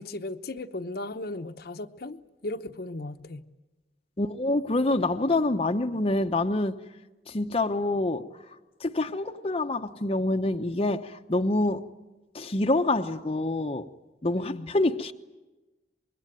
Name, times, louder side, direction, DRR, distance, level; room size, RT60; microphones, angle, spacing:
voice 1, 0.0-3.4 14.3-14.7, left 2 dB, 60° left, 1.0 m, -36 dB
voice 2, 4.2-6.8 7.3-8.2 8.8-11.9 12.3-13.9 14.2-15.1, left 2 dB, 35° left, 0.8 m, -26 dB
25.0 x 22.0 x 9.2 m
head